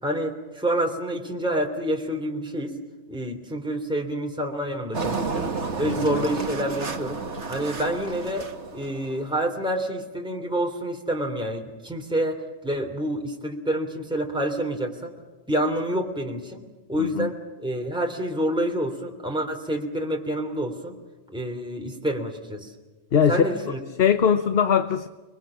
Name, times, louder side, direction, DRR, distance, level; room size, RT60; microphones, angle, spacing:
voice 1, 0.0-2.8 3.1-5.5 5.8-7.2 7.5-8.5 8.7-15.1 15.5-16.6 16.9-21.0 21.3-22.7 23.3-23.8, right 1 dB, 5° right, 3.1 m, -28 dB
Engine, 4.9-9.4, right 4 dB, 55° right, 2.2 m, -31 dB
voice 2, 5.8-6.2 17.0-17.3 23.1-25.1, left 7 dB, 50° left, 1.1 m, -22 dB
29.5 x 22.5 x 7.3 m
omnidirectional pair, 1.4 m